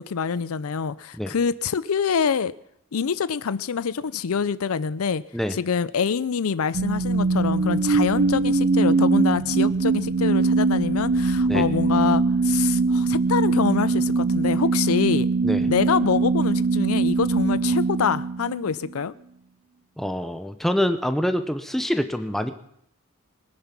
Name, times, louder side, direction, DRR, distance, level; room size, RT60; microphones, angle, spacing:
voice 1, 0.0-2.5 2.9-5.2 5.5-15.3 15.7-19.1, left 6 dB, 90° left, 0.5 m, -25 dB
sound 1, 6.7-18.9, right 3 dB, 55° right, 0.5 m, -22 dB
voice 2, 20.0-22.5, equal, ahead, 0.8 m, -25 dB
21.0 x 9.6 x 6.0 m
head